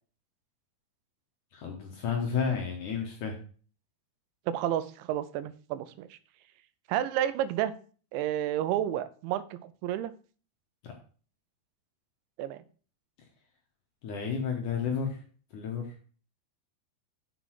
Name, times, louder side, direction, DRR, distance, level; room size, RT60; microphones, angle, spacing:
voice 1, 1.5-3.4 10.8-10.9 14.0-15.2 15.5-15.9, left 6 dB, 65° left, 1 dB, 2.1 m, -31 dB
voice 2, 4.5-6.2 6.9-7.7 8.1-10.1 12.4-12.6, right 11 dB, 90° right, 15 dB, 3.0 m, -31 dB
6.8 x 6.0 x 6.3 m, 0.41 s
omnidirectional pair, 5.1 m